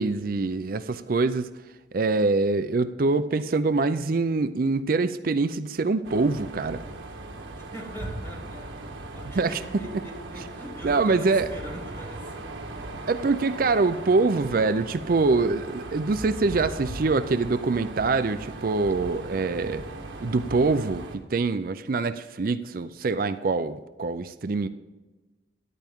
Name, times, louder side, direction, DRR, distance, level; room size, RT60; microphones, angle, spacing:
voice 1, 0.0-1.5 1.9-6.8 9.3-9.5 10.8-11.5 13.1-19.8 20.2-21.0 21.3-24.7, right 3 dB, 50° right, 12 dB, 0.4 m, -24 dB
sound 1, 6.0-21.2, right 2 dB, 85° right, 1.5 m, -38 dB
voice 2, 7.7-12.5, equal, 15° left, -3 dB, 3.0 m, -42 dB
13.5 x 10.5 x 3.6 m, 1.2 s
head